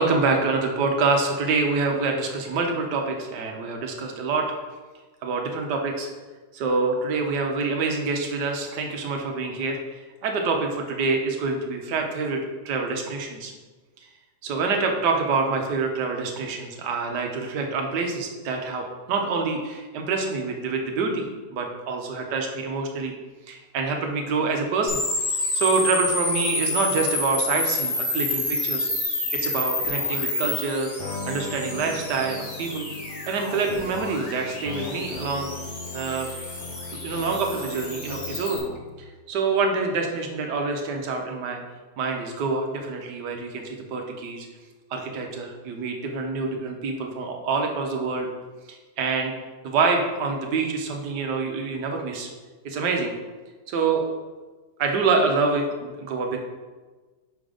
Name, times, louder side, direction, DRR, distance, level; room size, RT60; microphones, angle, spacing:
voice 1, 0.0-4.5 5.2-6.1 6.5-13.5 14.0-14.1 14.4-21.3 21.5-23.1 23.5-25.0 25.5-28.9 29.3-30.9 31.3-32.9 33.3-35.5 35.9-36.3 36.9-38.6 39.0-41.6 42.0-44.5 44.9-48.3 48.7-49.3 49.6-52.3 52.6-53.1 53.7-54.1 54.8-56.4, right 4 dB, 70° right, 3 dB, 1.4 m, -26 dB
sound 1, 24.9-38.6, left 2 dB, 30° left, 1.1 m, -29 dB
sound 2, 31.0-39.0, left 3 dB, 55° left, 0.9 m, -38 dB
6.1 x 3.8 x 5.0 m, 1.3 s
omnidirectional pair, 1.9 m